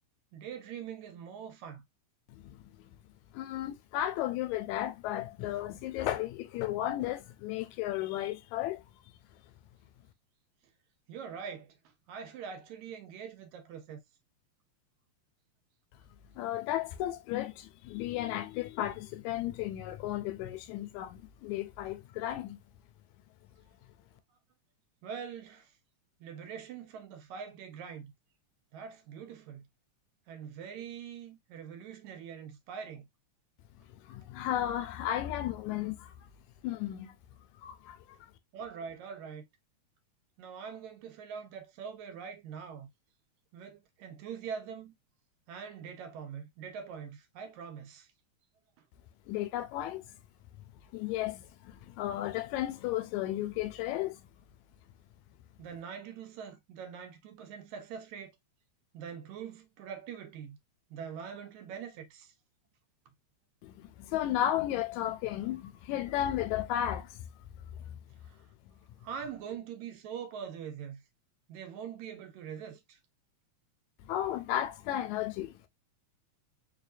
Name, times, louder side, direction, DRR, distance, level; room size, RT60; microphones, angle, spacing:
voice 1, 0.3-1.8 11.1-11.8 12.1-14.0 25.0-25.7 26.2-28.1 28.7-29.7 30.3-33.1 38.5-39.5 40.4-42.9 43.5-44.9 45.5-48.1 55.6-58.3 58.9-60.6 60.9-62.3 68.3-68.4 69.0-71.0 71.5-73.0, right 7 dB, 85° right, 2.1 m, -43 dB
voice 2, 2.3-2.6 3.3-8.8 16.4-22.6 33.9-36.3 36.6-37.2 37.6-38.3 49.3-50.2 50.6-54.2 63.6-67.3 67.8-68.0 74.0-75.7, left 12 dB, 85° left, 1.9 m, -34 dB
4.6 x 2.7 x 2.5 m
omnidirectional pair, 3.3 m